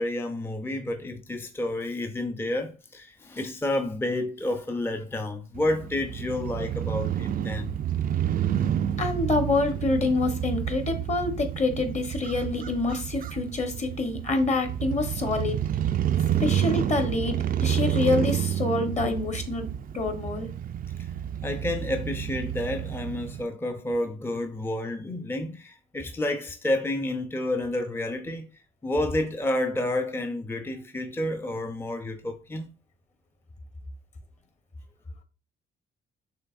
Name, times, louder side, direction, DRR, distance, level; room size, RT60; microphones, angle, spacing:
voice 1, 0.0-7.8 21.4-28.5 28.8-32.7, left 1 dB, 10° left, 0.6 m, -30 dB
Crow / Motorcycle, 5.5-23.4, right 10 dB, 45° right, 0.4 m, -29 dB
voice 2, 9.0-15.6 16.4-19.7 19.9-20.5, left 3 dB, 35° left, 1.2 m, -26 dB
5.6 x 3.3 x 2.5 m
cardioid pair, 90°, 20 cm